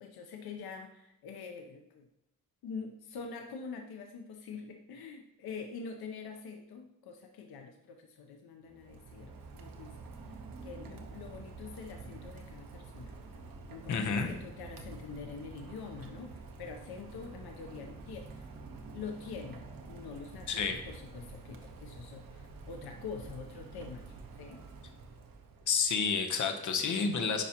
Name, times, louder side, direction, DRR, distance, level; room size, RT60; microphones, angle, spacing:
voice 1, 0.0-2.1 2.6-10.1 10.6-13.2 13.7-18.5 18.9-19.6 19.9-24.6, left 5 dB, 90° left, 4 dB, 0.7 m, -45 dB
Rain, 8.7-25.9, right 3 dB, 70° right, 1.0 m, -48 dB
voice 2, 13.9-14.3 20.5-20.8 25.7-27.4, left 5 dB, 55° left, 5 dB, 0.9 m, -30 dB
10.0 x 5.0 x 2.9 m, 0.85 s
wide cardioid pair, 180°, 36 cm